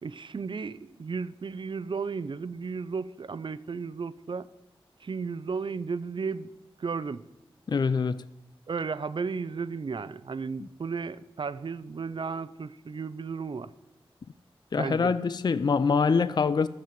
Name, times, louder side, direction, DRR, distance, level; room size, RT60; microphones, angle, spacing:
voice 1, 0.0-4.5 5.0-6.5 6.8-7.2 8.7-13.7 14.8-15.1, right 5 dB, 55° right, 0.5 m, -34 dB
voice 2, 7.7-8.2 10.6-10.7 14.7-16.7, left 5 dB, 45° left, 0.4 m, -24 dB
12.5 x 7.4 x 7.5 m
wide cardioid pair, 80°, 10 cm